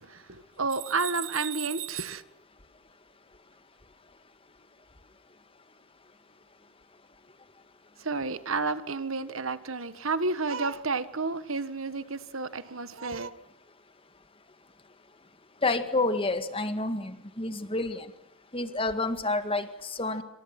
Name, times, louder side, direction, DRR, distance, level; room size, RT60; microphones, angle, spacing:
voice 1, 0.0-2.2 8.0-13.3, right 4 dB, 65° right, 1.5 m, -31 dB
voice 2, 15.6-18.1 18.5-20.2, left 2 dB, 25° left, 1.9 m, -29 dB
28.0 x 26.0 x 6.1 m
head